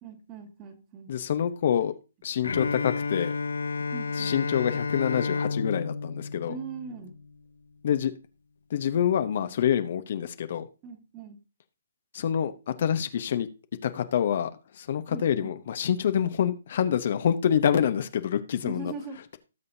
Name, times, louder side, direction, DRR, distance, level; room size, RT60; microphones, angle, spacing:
voice 1, 0.0-1.1 3.9-4.4 6.5-7.2 10.8-11.4 15.1-15.6 18.6-19.2, right 5 dB, 25° right, 4 dB, 2.0 m, -40 dB
voice 2, 1.1-1.9 2.2-3.3 4.2-6.5 7.8-8.1 8.7-10.6 12.1-13.5 13.8-18.9, left 9 dB, 50° left, 10 dB, 0.9 m, -26 dB
Bowed string instrument, 2.4-7.3, left 4 dB, 75° left, 0.7 m, -31 dB
18.0 x 6.8 x 2.7 m, 0.32 s
figure-of-eight pair, 135°, 0 cm